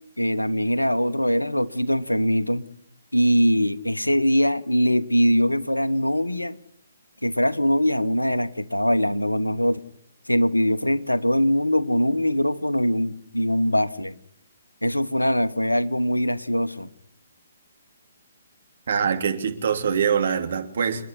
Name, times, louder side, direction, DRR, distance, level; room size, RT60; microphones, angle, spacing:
voice 1, 0.2-2.6 3.1-6.6 7.2-9.8 10.3-14.1 14.8-16.9, equal, 90° left, 1.2 m, -22 dB
voice 2, 18.9-21.0, right 7 dB, 55° right, 3.1 m, -24 dB
29.5 x 10.5 x 9.7 m
figure-of-eight pair, 135°, 0 cm